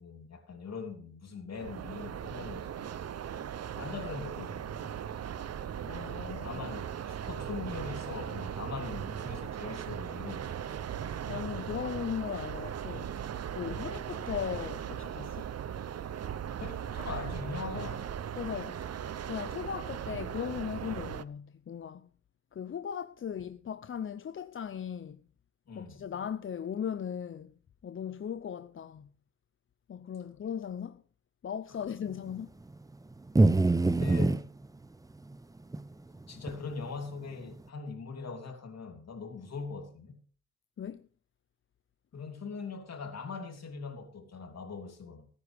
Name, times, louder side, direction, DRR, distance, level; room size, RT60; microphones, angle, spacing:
voice 1, 0.0-2.9 3.8-4.9 6.4-10.7 13.6-14.0 16.6-18.1 25.7-26.1 31.7-31.9 34.0-34.5 36.3-40.2 42.1-45.3, left 4 dB, 60° left, 3.1 m, -41 dB
sound 1, 1.5-21.2, right 9 dB, 55° right, 0.7 m, -38 dB
voice 2, 5.8-6.6 11.3-13.1 13.5-15.5 18.4-18.8 19.2-22.1 22.5-25.2 25.7-27.5 27.8-29.1 29.9-31.0 31.4-32.5 40.8-41.0, left 8 dB, 40° left, 0.6 m, -38 dB
sound 2, 33.3-34.4 35.7-35.8 36.5-36.6, right 2 dB, 10° right, 0.6 m, -23 dB
18.5 x 9.9 x 3.5 m
cardioid pair, 95°, 30 cm